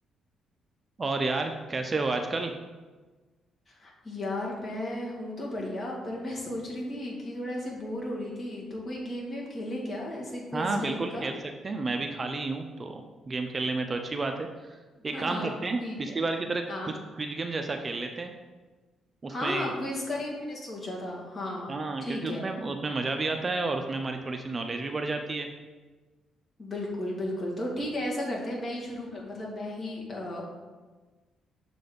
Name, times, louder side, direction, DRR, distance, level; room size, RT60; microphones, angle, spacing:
voice 1, 1.0-2.5 10.5-11.3 11.6-14.5 15.0-16.6 17.2-18.3 19.2-19.7 21.7-25.5, right 3 dB, 30° right, 5 dB, 0.5 m, -31 dB
voice 2, 3.7-11.3 15.1-16.2 16.7-16.9 19.3-21.7 22.0-22.5 26.6-30.4, left 1 dB, 35° left, -3 dB, 2.1 m, -34 dB
6.7 x 4.0 x 5.2 m, 1.3 s
cardioid pair, 90°, 0 cm